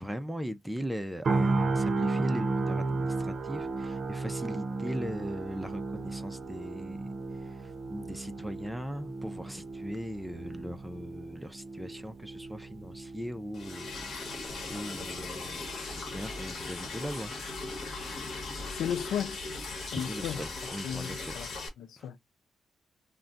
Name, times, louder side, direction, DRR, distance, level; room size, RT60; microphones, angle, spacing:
voice 1, 0.0-7.1 7.4-14.3 14.7-15.7 16.0-17.3 19.9-21.3 22.0-22.1, equal, 5° right, 0.4 m, -39 dB
sound 1, 1.2-15.2 15.6-15.8, right 3 dB, 55° right, 0.6 m, -34 dB
Liquid, 13.5-21.7, left 3 dB, 65° left, 1.0 m, -38 dB
voice 2, 18.7-19.4 19.8-20.4 20.8-21.5 21.8-22.2, left 9 dB, 85° left, 0.3 m, -34 dB
2.3 x 2.1 x 3.7 m
cardioid pair, 80°, 0 cm